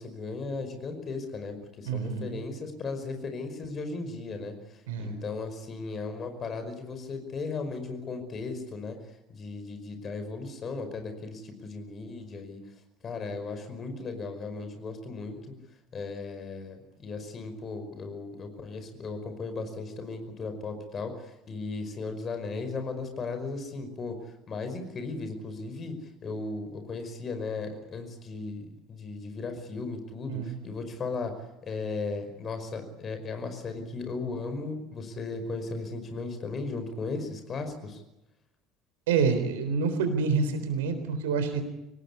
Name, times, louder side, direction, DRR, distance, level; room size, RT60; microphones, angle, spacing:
voice 1, 0.0-9.0 9.3-12.6 13.0-15.5 15.9-24.2 24.5-26.0 26.2-31.3 31.6-38.0, left 3 dB, 35° left, 7 dB, 5.3 m, -36 dB
voice 2, 1.9-2.4 4.9-5.2 30.3-30.5 39.1-41.6, right 5 dB, 65° right, 8 dB, 3.9 m, -27 dB
25.5 x 19.0 x 8.5 m, 0.93 s
figure-of-eight pair, 60°, 0 cm